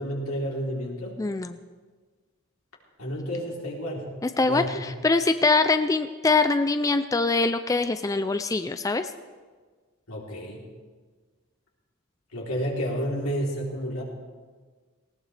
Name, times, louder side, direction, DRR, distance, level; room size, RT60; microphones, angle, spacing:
voice 1, 0.0-1.2 3.0-4.1 4.4-4.8 10.1-10.6 12.3-14.0, equal, 85° left, -3 dB, 3.4 m, -30 dB
voice 2, 1.2-1.6 4.2-9.1, left 3 dB, 15° left, 10 dB, 0.3 m, -23 dB
19.0 x 17.5 x 3.3 m, 1.5 s
head